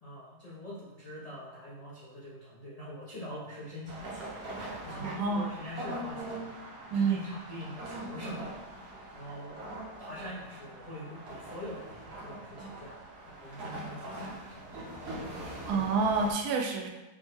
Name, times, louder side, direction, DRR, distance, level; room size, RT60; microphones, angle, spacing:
voice 1, 0.0-6.5 6.9-9.6 10.0-15.4, left 1 dB, 70° left, -9 dB, 0.3 m, -44 dB
sound 1, 3.9-16.3, right 1 dB, 50° right, 0.8 m, -42 dB
voice 2, 5.0-5.5 6.9-7.2 15.7-16.9, right 4 dB, 70° right, 3 dB, 1.1 m, -28 dB
5.2 x 2.1 x 3.1 m, 1.1 s
omnidirectional pair, 1.9 m